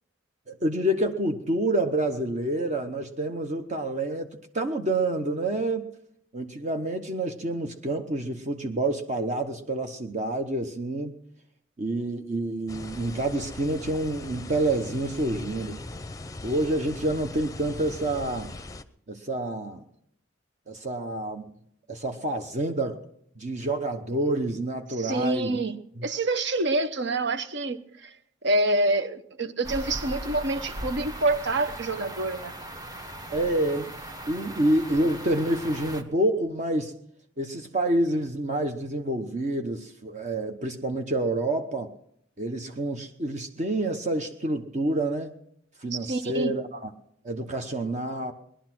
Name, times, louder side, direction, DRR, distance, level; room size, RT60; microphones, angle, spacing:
voice 1, 0.5-5.9 6.3-11.1 11.8-15.8 16.4-18.5 19.1-19.8 20.7-21.5 21.9-23.0 23.4-25.6 26.0-26.1 33.3-33.9 34.3-36.9 37.4-41.9 42.4-45.3 45.8-46.9 47.2-48.3, right 1 dB, 40° right, 5 dB, 1.0 m, -28 dB
sound 1, 12.7-18.8, left 2 dB, 20° left, 0.7 m, -40 dB
voice 2, 25.0-28.1 28.4-32.5 45.9-46.5, right 2 dB, 60° right, 11 dB, 1.0 m, -27 dB
sound 2, 29.6-36.0, right 1 dB, 20° right, 1.4 m, -38 dB
19.5 x 11.5 x 6.1 m, 0.73 s
head